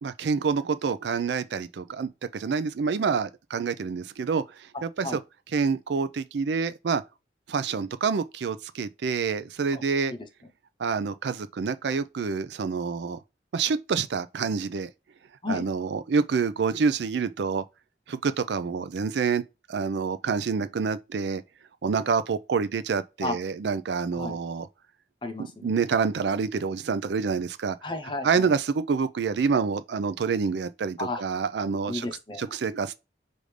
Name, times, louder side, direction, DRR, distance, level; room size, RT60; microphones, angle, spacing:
voice 1, 0.0-5.2 5.5-7.0 7.5-10.1 10.8-13.2 13.5-14.9 15.5-17.6 18.1-19.4 19.7-21.4 21.8-24.7 25.6-27.8 28.2-32.1 32.4-33.0, right 5 dB, 70° right, 0.4 m, -27 dB
voice 2, 25.2-25.7 27.8-28.5 31.0-31.2 31.9-32.5, left 2 dB, 25° left, 0.7 m, -33 dB
5.0 x 2.6 x 3.2 m
head